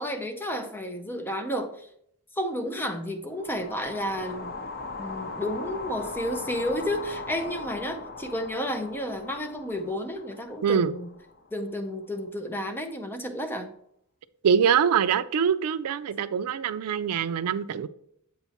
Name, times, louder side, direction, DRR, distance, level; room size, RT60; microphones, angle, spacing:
voice 1, 0.0-1.9 2.3-4.6 5.0-11.1 11.5-13.7, equal, 10° left, 5 dB, 0.5 m, -31 dB
sound 1, 3.3-11.5, left 3 dB, 45° left, 0.9 m, -39 dB
voice 2, 10.6-10.9 14.4-17.9, right 7 dB, 85° right, 15 dB, 0.4 m, -24 dB
7.9 x 2.8 x 5.6 m, 0.71 s
head